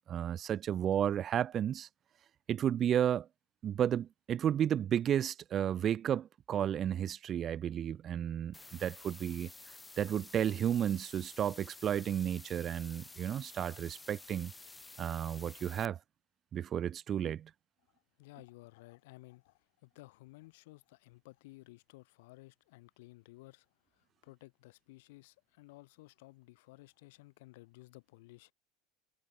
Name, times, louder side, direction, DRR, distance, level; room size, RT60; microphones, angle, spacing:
voice 1, 0.1-1.9 2.5-3.3 3.6-9.5 10.0-14.5 15.0-16.0 16.5-17.5, right 10 dB, 40° right, 0.3 m, -32 dB
sound 1, 8.5-15.8, left 3 dB, 10° left, 0.7 m, -52 dB
voice 2, 17.9-28.5, left 22 dB, 75° left, 4.7 m, -56 dB
supercardioid pair, 100°, 0 cm